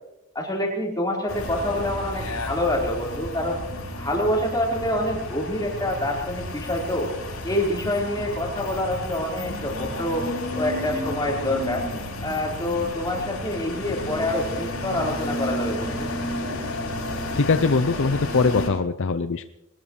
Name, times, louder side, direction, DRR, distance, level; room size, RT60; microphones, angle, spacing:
voice 1, 0.3-3.6 4.0-7.1 7.4-10.3 10.5-11.8 12.2-16.1, left 1 dB, 20° left, -2 dB, 4.6 m, -26 dB
sound 1, 1.3-18.7, left 1 dB, 80° left, 7.4 m, -32 dB
voice 2, 17.4-19.4, left 4 dB, 60° left, 11 dB, 0.6 m, -22 dB
22.5 x 19.5 x 3.3 m, 0.87 s
head